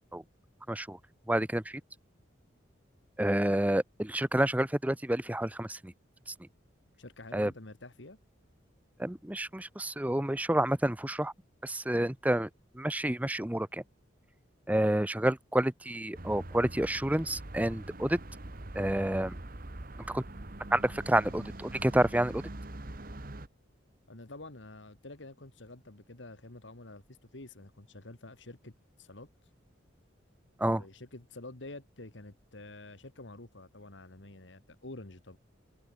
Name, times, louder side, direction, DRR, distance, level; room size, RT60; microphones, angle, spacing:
voice 1, 0.7-1.0 1.3-1.8 3.2-5.9 7.3-7.5 9.0-11.3 11.6-12.5 12.7-13.8 14.7-18.2 18.7-19.4 20.1-20.2 20.7-22.4 30.6-30.8, right 1 dB, 10° right, 0.7 m, -29 dB
voice 2, 7.0-8.2 24.1-29.3 30.7-35.4, left 2 dB, 70° left, 2.0 m, -48 dB
sound 1, 16.1-23.5, right 1 dB, 45° right, 1.6 m, -43 dB
open air
head